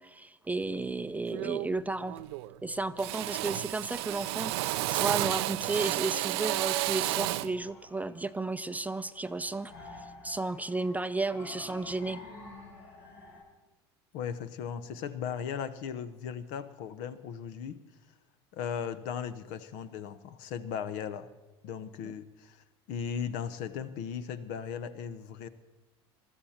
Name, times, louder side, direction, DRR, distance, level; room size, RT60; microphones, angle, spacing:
voice 1, 0.0-2.2 2.6-12.2 22.0-22.1, right 3 dB, 10° right, 12 dB, 0.5 m, -33 dB
Drill, 0.7-0.9 1.3-2.6 3.0-7.6, right 19 dB, 70° right, 0.5 m, -32 dB
sound 1, 6.5-13.4, left 2 dB, 80° left, 6.0 m, -50 dB
voice 2, 14.1-17.8 18.5-21.3 21.6-25.5, left 7 dB, 65° left, 12 dB, 1.0 m, -37 dB
21.0 x 13.5 x 4.4 m, 1.1 s
hypercardioid pair, 80°, 14 cm